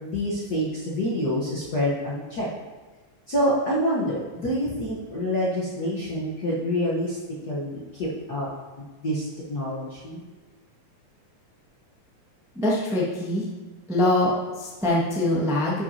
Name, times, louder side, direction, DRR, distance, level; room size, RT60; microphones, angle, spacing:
voice 1, 0.0-2.5 3.3-7.2 7.5-8.5 9.0-10.2, equal, 55° left, -7 dB, 1.1 m, -27 dB
voice 2, 12.5-13.4 13.9-15.8, left 1 dB, 5° right, -6 dB, 0.4 m, -23 dB
12.0 x 6.0 x 2.8 m, 1.3 s
omnidirectional pair, 3.3 m